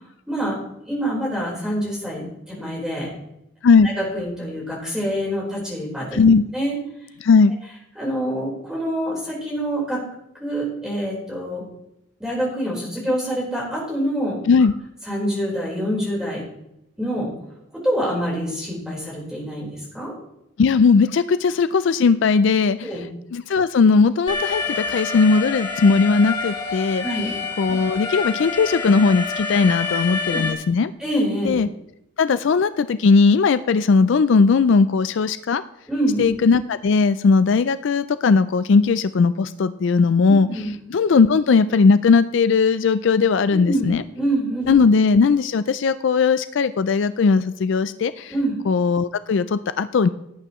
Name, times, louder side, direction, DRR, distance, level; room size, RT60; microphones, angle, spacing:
voice 1, 0.9-3.1 3.8-6.2 6.5-6.8 8.0-10.0 10.4-11.6 12.2-14.4 15.0-16.4 17.0-17.3 17.8-20.1 22.8-23.1 27.0-27.4 30.3-30.4 31.0-31.5 35.9-36.3 40.5-40.7 43.5-43.9 44.1-44.7 48.3-48.6, equal, 5° right, -5 dB, 4.2 m, -26 dB
voice 2, 6.1-6.4 7.2-7.5 14.5-14.7 20.6-22.9 23.3-27.0 27.6-30.9 31.4-31.7 32.2-35.6 36.2-40.5 40.9-44.0 44.7-48.3 48.7-50.1, left 4 dB, 60° left, 13 dB, 0.4 m, -18 dB
Alarm, 24.3-30.5, left 4 dB, 20° left, 1.3 m, -28 dB
17.5 x 8.9 x 3.1 m, 0.83 s
head